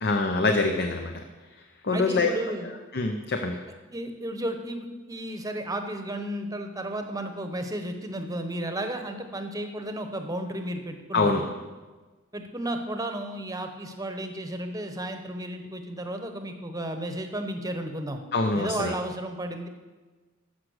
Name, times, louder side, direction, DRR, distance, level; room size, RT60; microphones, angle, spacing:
voice 1, 0.0-1.1 1.8-2.3 2.9-3.6 11.1-11.4 18.3-18.9, left 3 dB, 50° left, 4 dB, 0.7 m, -24 dB
voice 2, 1.9-2.7 3.9-11.5 12.3-18.2 18.5-19.7, right 1 dB, 15° right, 6 dB, 0.9 m, -33 dB
14.0 x 6.1 x 6.4 m, 1.3 s
head